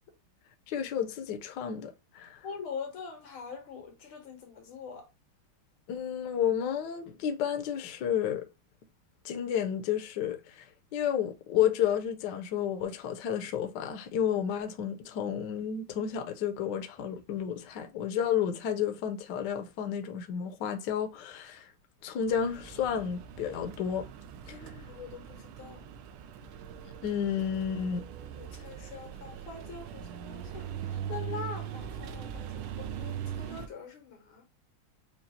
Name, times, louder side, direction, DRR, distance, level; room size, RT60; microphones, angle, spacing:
voice 1, 0.7-2.4 5.9-8.5 9.2-10.7 10.9-21.7 22.0-24.1 27.0-28.1, left 9 dB, 70° left, 1.1 m, -31 dB
voice 2, 2.4-5.1 24.5-25.8 28.4-34.5, left 5 dB, 90° left, 2.0 m, -43 dB
sound 1, 22.3-33.7, right 8 dB, 80° right, 1.4 m, -41 dB
5.2 x 2.3 x 2.7 m
omnidirectional pair, 2.3 m